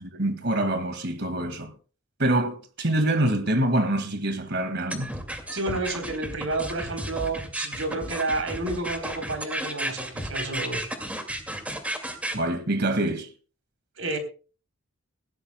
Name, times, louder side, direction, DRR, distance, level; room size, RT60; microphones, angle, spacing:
voice 1, 0.0-1.7 2.2-5.1 12.3-13.3, right 1 dB, 55° right, 2.0 m, -25 dB
sound 1, 4.9-12.4, right 1 dB, 5° right, 2.2 m, -33 dB
voice 2, 5.5-10.9 14.0-14.2, right 2 dB, 70° right, 3.7 m, -30 dB
19.5 x 15.5 x 2.2 m
head